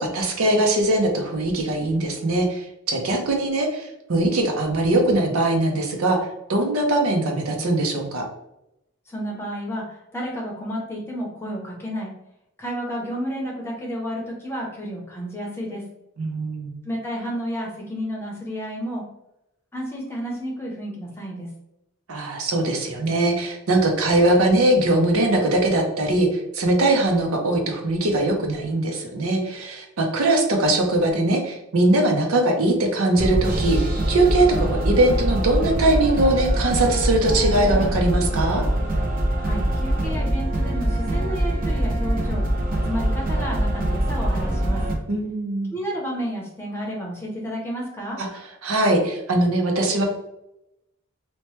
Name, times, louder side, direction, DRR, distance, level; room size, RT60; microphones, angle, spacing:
voice 1, 0.0-6.2 6.5-8.3 16.2-16.8 22.1-33.8 34.1-38.6 45.1-45.7 48.2-48.3 48.6-50.0, right 2 dB, 85° right, 2 dB, 0.6 m, -21 dB
voice 2, 9.1-12.1 12.6-15.8 16.8-19.0 19.7-21.5 39.4-44.8 45.7-48.2, equal, 10° left, -2 dB, 0.7 m, -31 dB
sound 1, 33.2-45.0, right 1 dB, 40° right, 0.5 m, -23 dB
2.9 x 2.1 x 3.0 m, 0.86 s
head